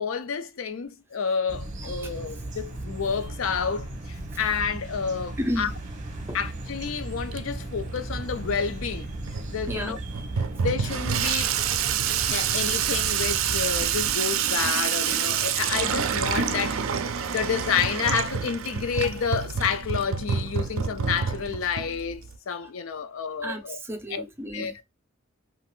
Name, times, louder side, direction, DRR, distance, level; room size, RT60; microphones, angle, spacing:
voice 1, 0.0-5.7 6.3-9.1 9.5-10.0 10.6-11.5 12.3-16.8 17.3-23.8 24.1-24.2 24.5-24.8, left 6 dB, 80° left, 0.5 m, -29 dB
sound 1, 1.5-14.2, right 1 dB, 40° right, 0.9 m, -36 dB
voice 2, 1.8-2.1 5.4-5.7 6.3-6.4 9.7-10.0 10.3-10.5 23.4-24.8, equal, 10° right, 0.6 m, -33 dB
Water tap faucet / Sink (filling or washing), 6.3-22.4, right 8 dB, 90° right, 0.4 m, -28 dB
3.5 x 2.4 x 2.3 m
head